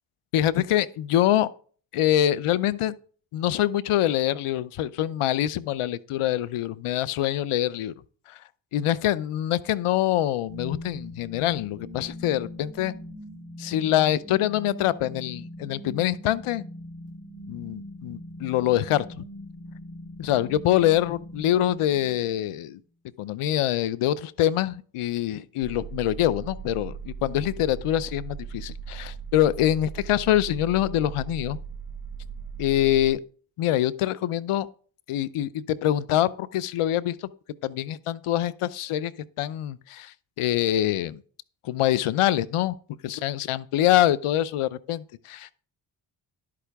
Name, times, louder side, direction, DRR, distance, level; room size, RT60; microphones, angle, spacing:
voice 1, 0.3-1.5 1.9-2.9 3.3-7.9 8.3-8.4 8.7-12.9 13.6-16.6 17.5-19.2 20.2-22.8 23.2-31.6 32.6-33.2 33.6-34.7 35.1-37.3 37.6-39.1 39.4-41.2 41.6-42.8 43.0-45.6, left 12 dB, 80° left, 0.7 m, -25 dB
sound 1, 10.5-22.5, left 1 dB, 10° right, 3.6 m, -41 dB
sound 2, 25.6-33.1, right 6 dB, 50° right, 1.4 m, -38 dB
11.0 x 8.6 x 3.5 m
cardioid pair, 75°, 50 cm